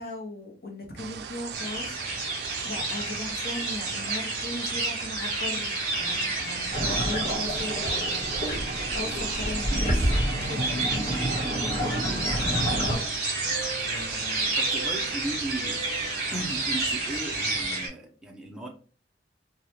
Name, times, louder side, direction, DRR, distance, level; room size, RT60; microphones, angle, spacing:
voice 1, 0.0-10.2 10.5-10.7, left 2 dB, 60° left, 0.9 m, -38 dB
sound 1, 1.0-17.8, right 7 dB, 65° right, 0.3 m, -38 dB
sound 2, 1.5-17.9, right 2 dB, 50° right, 1.1 m, -31 dB
sound 3, 6.7-13.0, equal, 35° left, 1.2 m, -29 dB
voice 2, 11.4-12.8 13.8-18.7, right 1 dB, 5° right, 0.6 m, -38 dB
3.2 x 2.4 x 2.7 m
head